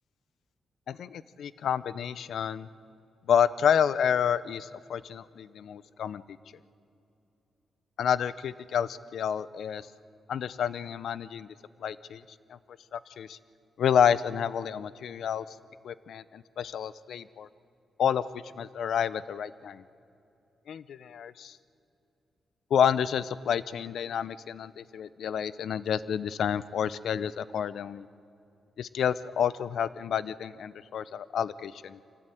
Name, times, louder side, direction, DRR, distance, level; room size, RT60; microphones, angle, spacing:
voice 1, 0.9-2.7 3.3-6.2 8.0-9.9 10.3-11.5 11.8-12.2 12.5-12.6 12.9-13.4 13.8-15.6 15.8-17.5 18.0-19.8 20.7-21.6 22.7-28.1 28.8-32.0, left 8 dB, 65° left, 17 dB, 0.6 m, -29 dB
24.5 x 17.0 x 9.2 m, 2.7 s
wide cardioid pair, 170°, 0 cm